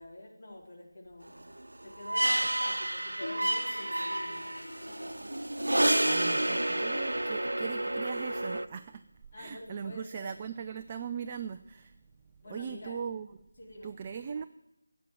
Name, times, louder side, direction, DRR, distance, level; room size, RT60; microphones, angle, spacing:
voice 1, 0.0-1.4 1.8-4.6 9.3-10.4 12.4-13.0 13.6-13.9, left 1 dB, 45° left, -1 dB, 4.1 m, -47 dB
sound 1, 1.4-8.7, right 1 dB, 85° right, 0.8 m, -30 dB
Piano, 3.2-13.1, left 2 dB, 65° left, 1.2 m, -50 dB
sound 2, 3.4-6.5 6.9-7.0, left 1 dB, 10° left, 2.4 m, -55 dB
voice 2, 6.0-9.0 9.4-11.9 12.5-13.3 13.8-14.4, right 7 dB, 25° right, 9 dB, 0.5 m, -39 dB
15.0 x 8.2 x 9.2 m, 0.86 s
figure-of-eight pair, 165°, 0 cm